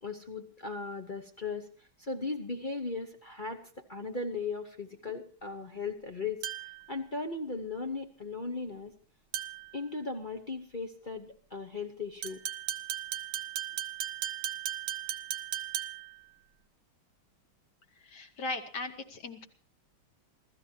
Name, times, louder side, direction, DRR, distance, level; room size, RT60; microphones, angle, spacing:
voice 1, 0.0-1.7 2.0-3.6 3.9-6.4 6.9-8.9 9.7-12.4, left 3 dB, 40° left, 5 dB, 0.7 m, -37 dB
sound 1, 6.4-6.9 9.3-9.7 12.2-16.2, right 11 dB, 70° right, 1.6 m, -36 dB
voice 2, 18.0-19.5, left 2 dB, 55° left, 5 dB, 2.0 m, -38 dB
27.5 x 14.5 x 2.8 m, 0.41 s
omnidirectional pair, 2.3 m